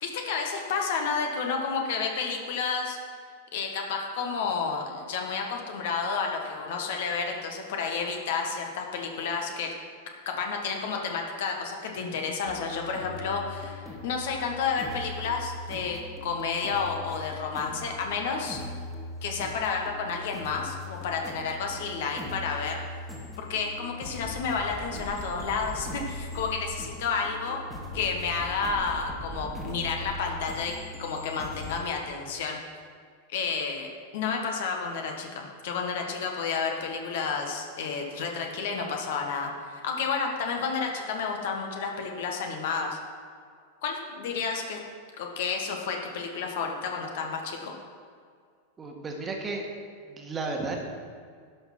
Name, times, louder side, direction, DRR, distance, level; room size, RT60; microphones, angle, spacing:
voice 1, 0.0-3.0 3.5-9.7 10.2-18.6 19.2-22.8 23.4-27.6 27.9-30.7 31.0-32.6 33.3-43.0 43.8-44.8 45.2-47.7, left 5 dB, 55° left, 2 dB, 1.5 m, -31 dB
sound 1, 12.5-31.8, left 1 dB, ahead, 1.7 m, -40 dB
voice 2, 48.8-49.7 50.0-50.8, right 3 dB, 20° right, 1 dB, 1.7 m, -33 dB
11.5 x 6.1 x 6.1 m, 2.1 s
figure-of-eight pair, 90°, 0 cm